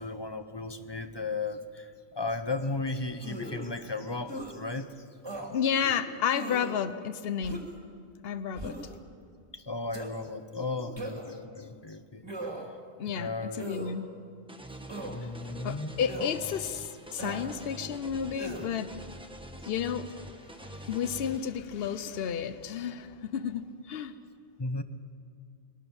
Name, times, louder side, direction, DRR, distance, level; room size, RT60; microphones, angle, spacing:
voice 1, 0.0-5.1 9.5-12.3 13.2-13.7 15.0-15.9 24.6-24.8, left 3 dB, 25° left, 9 dB, 0.9 m, -35 dB
sound 1, 3.2-3.7 4.3-4.5 5.2-5.5 6.3-6.8 7.4-7.8 8.5-9.0 9.9-10.1 11.0-11.4 12.2-12.7 13.6-13.9 14.9-15.2 16.1-16.3 17.2-17.5 18.4-18.7, right 1 dB, 25° right, 2.6 m, -39 dB
voice 2, 5.5-7.6 8.2-8.8 13.0-14.1 15.6-18.9 19.7-20.1 20.5-24.1, left 7 dB, 65° left, 12 dB, 1.0 m, -32 dB
sound 2, 14.5-21.4, equal, 5° right, 1.0 m, -45 dB
21.0 x 18.0 x 7.2 m, 2.2 s
omnidirectional pair, 1.1 m